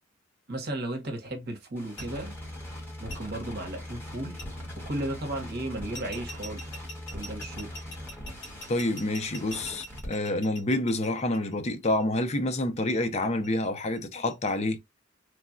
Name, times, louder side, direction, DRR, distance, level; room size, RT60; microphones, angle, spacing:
voice 1, 0.5-2.3 3.0-4.4 4.8-6.8 7.1-7.7, right 1 dB, 55° right, 0.9 m, -35 dB
sound 1, 1.8-10.1, left 1 dB, 10° left, 1.2 m, -41 dB
sound 2, 2.0-2.1 3.1-3.2 4.4-4.5 5.9-12.0 13.2-14.5, equal, 65° left, 1.5 m, -43 dB
voice 2, 8.7-14.8, left 1 dB, 35° left, 0.5 m, -28 dB
3.2 x 2.2 x 2.5 m
head